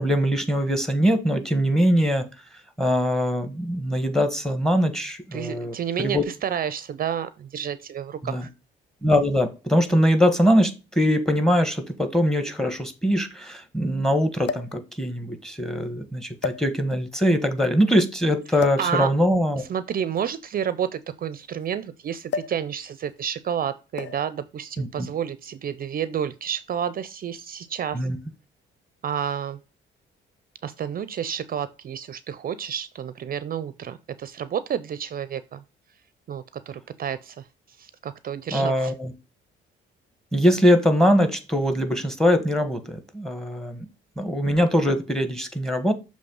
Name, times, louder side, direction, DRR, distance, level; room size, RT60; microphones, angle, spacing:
voice 1, 0.0-2.3 2.8-5.7 6.0-6.2 8.2-8.5 9.0-19.6 24.8-25.1 27.9-28.2 38.5-39.1 40.3-43.9 44.2-45.9, equal, ahead, 1.3 m, -22 dB
voice 2, 5.3-8.5 18.8-19.1 19.6-28.1 29.0-29.6 30.6-35.6 36.3-38.9, right 8 dB, 45° right, 0.5 m, -30 dB
sound 1, 10.7-10.8 11.9-12.0 12.2-12.3 14.4-14.8 15.7-15.8 16.4-17.1 18.6-18.9 20.0-21.7 22.3-22.7 22.9-23.2 24.0-24.3 25.3-25.6, left 6 dB, 65° left, 0.5 m, -33 dB
6.8 x 3.1 x 5.3 m
cardioid pair, 90°, 20 cm